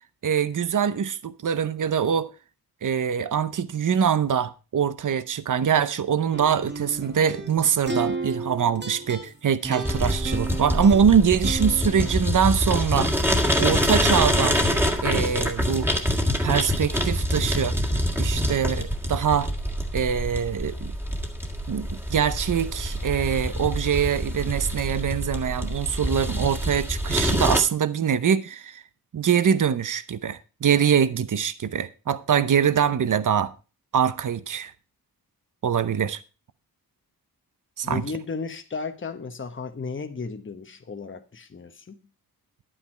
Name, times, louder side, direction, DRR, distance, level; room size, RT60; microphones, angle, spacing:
voice 1, 0.2-2.3 2.8-13.1 13.6-14.6 15.0-15.9 16.4-17.7 18.2-19.5 19.9-20.9 21.7-28.8 29.1-33.5 33.9-34.7 35.6-36.2 37.8-38.0, right 7 dB, 55° right, 0.8 m, -23 dB
sound 1, 6.3-12.4, right 3 dB, 30° right, 1.6 m, -33 dB
sound 2, 9.8-27.6, equal, 5° right, 1.9 m, -25 dB
voice 2, 37.8-42.1, left 4 dB, 35° left, 1.0 m, -34 dB
11.5 x 8.9 x 4.4 m
wide cardioid pair, 150°, 37 cm